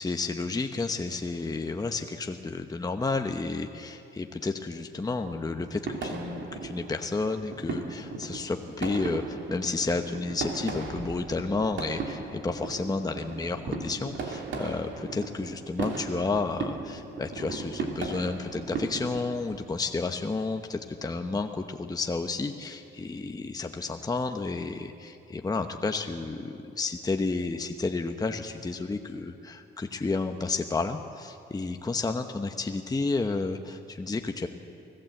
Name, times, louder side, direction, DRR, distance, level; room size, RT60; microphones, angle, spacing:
voice 1, 0.0-34.5, left 3 dB, 20° left, 5 dB, 1.0 m, -31 dB
sound 1, 5.3-19.6, right 4 dB, 70° right, 3.0 m, -37 dB
24.5 x 15.5 x 7.8 m, 2.7 s
cardioid pair, 90°, 20 cm